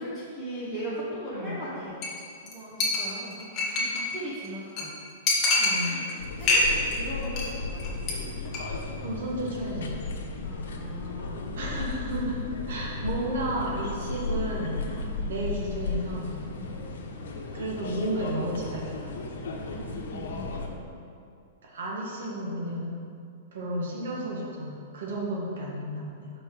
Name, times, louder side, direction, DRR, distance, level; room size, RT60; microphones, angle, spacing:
voice 1, 0.0-2.0 2.4-3.4 3.7-4.9 5.8-6.1 6.4-8.2 10.4-11.4 14.8-15.2 16.5-16.8 19.5-20.5, equal, ahead, -12 dB, 1.4 m, -39 dB
Chink clink, 2.0-2.2 2.5-2.6 2.8-4.1 4.4-4.5 4.8-4.9 5.3-6.1 6.4-7.0 7.2-7.5 7.8-8.1 8.4-8.6, left 3 dB, 20° left, 1.2 m, -25 dB
voice 2, 5.6-6.0 9.0-10.0 11.6-12.4 12.7-14.9 15.3-16.4 17.5-19.1 21.6-22.9 23.5-26.3, right 1 dB, 70° right, -3 dB, 2.0 m, -32 dB
sound 1, 6.2-20.7, left 3 dB, 90° left, 1.1 m, -35 dB
5.4 x 5.3 x 6.6 m, 2.5 s
supercardioid pair, 170°, 0 cm